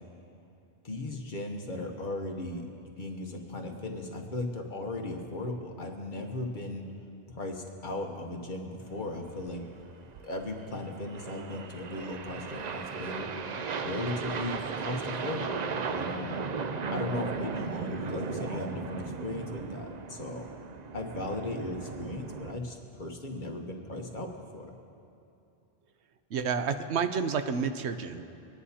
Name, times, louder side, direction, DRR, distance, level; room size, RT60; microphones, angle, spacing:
voice 1, 0.8-2.6 3.0-6.8 7.3-9.7 10.2-13.3 13.8-16.4 16.9-20.5 20.9-24.7, left 2 dB, 50° left, 2 dB, 1.2 m, -37 dB
sound 1, 9.2-22.5, right 5 dB, 50° right, 0.5 m, -36 dB
voice 2, 26.3-28.4, right 6 dB, 85° right, 9 dB, 0.9 m, -30 dB
22.0 x 10.0 x 2.8 m, 2.7 s
omnidirectional pair, 1.1 m